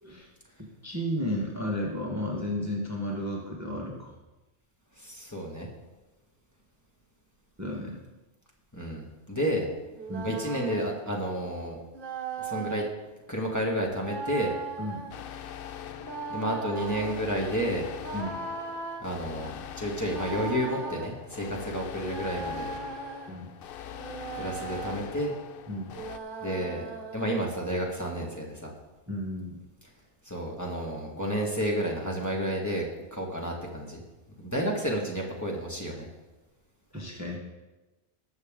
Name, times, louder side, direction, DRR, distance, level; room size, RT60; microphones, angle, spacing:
voice 1, 0.6-4.1 7.6-8.0 10.1-10.3 14.8-15.0 18.1-18.3 23.3-23.5 25.7-25.9 29.1-29.6 36.9-37.4, left 1 dB, 15° right, -2 dB, 1.4 m, -33 dB
voice 2, 5.0-5.7 8.7-9.7 10.2-11.8 12.4-12.8 13.3-14.5 16.3-17.9 19.0-22.7 24.4-25.4 26.4-26.9 27.1-28.7 30.2-34.0 34.4-36.1, equal, 15° left, -3 dB, 1.9 m, -31 dB
sound 1, 10.0-11.0 11.9-12.9 14.0-15.2 16.0-17.2 18.0-19.0 20.0-21.1 22.0-23.3 24.0-25.0 25.9-27.4, right 4 dB, 50° right, 1.1 m, -38 dB
sound 2, 15.1-26.2, left 9 dB, 60° left, 0.7 m, -42 dB
20.5 x 6.9 x 3.8 m, 1.1 s
omnidirectional pair, 1.2 m